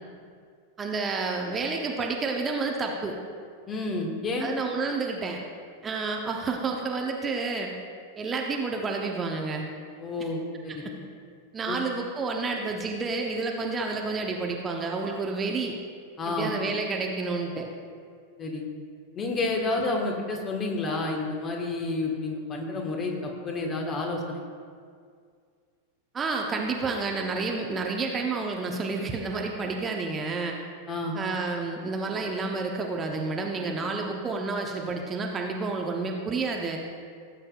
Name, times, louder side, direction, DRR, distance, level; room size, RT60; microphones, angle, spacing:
voice 1, 0.8-3.2 4.4-5.4 5.8-7.7 8.2-9.7 10.7-10.8 11.5-15.8 16.3-17.7 26.1-30.6 31.1-36.8, right 3 dB, 20° right, 1 dB, 0.9 m, -30 dB
voice 2, 3.7-4.5 10.0-10.8 11.7-11.8 16.2-16.5 18.4-18.7 19.1-24.4 30.9-31.2, left 2 dB, 25° left, 1 dB, 1.6 m, -30 dB
17.5 x 8.5 x 2.5 m, 2.1 s
figure-of-eight pair, 90°, 0 cm